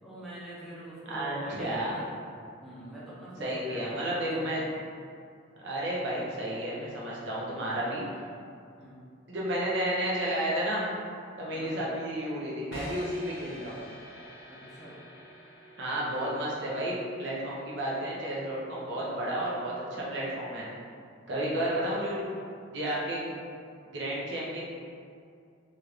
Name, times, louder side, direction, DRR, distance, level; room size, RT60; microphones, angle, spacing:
voice 1, 0.0-2.1 2.6-4.6 8.8-9.1 11.5-11.8 14.5-15.0 21.3-21.6, right 1 dB, ahead, -10 dB, 0.6 m, -43 dB
voice 2, 1.1-1.9 3.4-4.7 5.6-8.0 9.3-10.9 11.4-13.8 15.8-20.7 21.3-22.2 22.7-23.3 23.9-24.6, right 1 dB, 65° right, -6 dB, 0.7 m, -32 dB
sound 1, 12.7-18.7, equal, 80° left, 0.6 m, -47 dB
3.1 x 2.4 x 3.2 m, 2.3 s
head